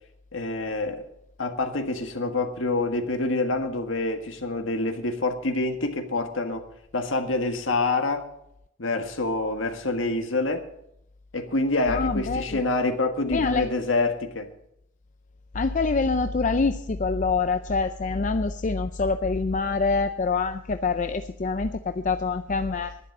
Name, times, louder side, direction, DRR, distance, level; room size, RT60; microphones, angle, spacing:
voice 1, 0.3-1.0 1.4-6.6 6.9-8.2 8.8-10.7 11.3-14.5, left 2 dB, 75° left, 6 dB, 1.6 m, -26 dB
voice 2, 11.9-12.6 13.3-13.7 15.5-22.9, left 4 dB, 40° left, 9 dB, 0.5 m, -25 dB
11.5 x 10.0 x 6.6 m, 0.76 s
head